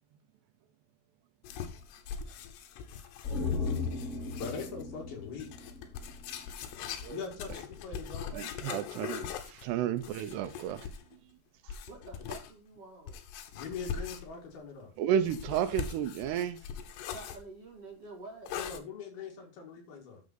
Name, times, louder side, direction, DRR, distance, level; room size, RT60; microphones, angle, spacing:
sound 1, 1.4-4.8 5.4-11.2 11.7-12.5 13.1-14.5 15.2-17.4 18.5-18.8, left 7 dB, 80° left, 3.1 m, -41 dB
sound 2, 3.2-6.6 6.9-7.0, left 4 dB, 30° left, 1.5 m, -36 dB
voice 1, 4.4-5.5 7.1-8.3 8.6-8.7 12.2-12.3 13.5-14.9 18.5-20.2, left 5 dB, 65° left, 3.7 m, -42 dB
voice 2, 8.3-10.9 11.6-11.7 15.0-16.6, right 9 dB, 80° right, 2.7 m, -32 dB
voice 3, 11.9-13.2 17.1-18.5, right 3 dB, 40° right, 2.6 m, -48 dB
10.5 x 6.8 x 3.9 m
omnidirectional pair, 5.0 m